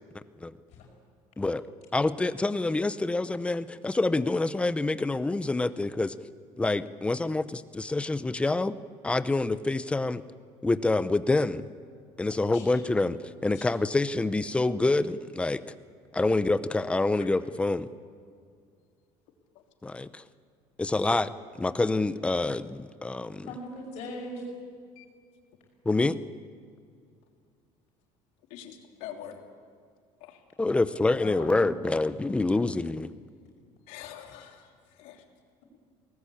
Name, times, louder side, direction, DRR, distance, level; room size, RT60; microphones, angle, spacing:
voice 1, 1.9-6.1 6.6-8.8 9.0-10.2 10.6-11.6 12.2-15.6 16.1-17.9 19.8-20.2 20.8-21.3 21.6-23.5 25.9-26.2 30.6-33.1, left 2 dB, 10° left, 14 dB, 0.6 m, -27 dB
voice 2, 23.5-24.4 31.2-31.7 34.2-34.3, left 1 dB, 65° left, 0 dB, 5.4 m, -40 dB
voice 3, 28.5-29.4 30.2-30.4 33.9-34.6 35.0-35.2, left 10 dB, 85° left, 2 dB, 3.2 m, -44 dB
23.0 x 19.0 x 8.7 m, 2.2 s
cardioid pair, 155°, 13 cm